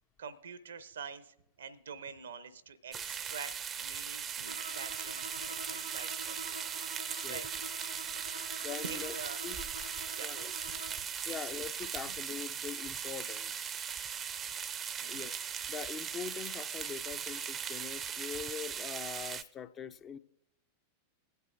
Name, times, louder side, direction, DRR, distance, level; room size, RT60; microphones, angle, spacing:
voice 1, 0.2-3.5 3.8-6.8 7.3-7.5 7.7-8.1 8.8-9.5 10.0-10.3 10.6-10.7 11.3-11.5 15.0-15.3, right 6 dB, 65° right, 0.6 m, -46 dB
sound 1, 2.9-19.4, right 8 dB, 25° right, 0.5 m, -39 dB
Bowed string instrument, 4.4-11.1, equal, 85° left, 2.0 m, -47 dB
sound 2, 8.1-8.3 9.0-9.3 9.8-10.1 10.6-11.1 11.4-11.5 11.9-12.6 12.9-13.0 13.3-13.4 13.6-14.3, left 9 dB, 60° left, 1.1 m, -56 dB
voice 2, 8.6-9.1 9.4-9.6 10.2-10.5 10.9-13.8 15.1-15.4 15.7-20.2, left 7 dB, 25° left, 0.4 m, -43 dB
21.0 x 8.0 x 2.5 m
figure-of-eight pair, 90°, 0 cm